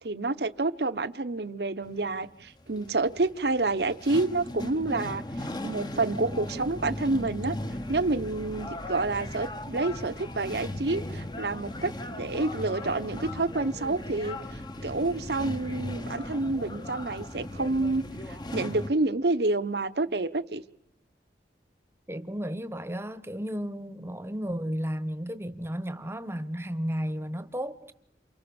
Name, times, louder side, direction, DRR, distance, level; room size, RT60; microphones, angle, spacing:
voice 1, 0.0-7.6 7.9-14.4 14.8-18.0 18.3-20.6, right 2 dB, 65° right, 1.0 m, -28 dB
sound 1, 1.8-18.9, left 1 dB, 25° left, 1.0 m, -37 dB
voice 2, 22.1-27.9, equal, 15° right, 1.1 m, -33 dB
28.5 x 28.5 x 7.1 m
head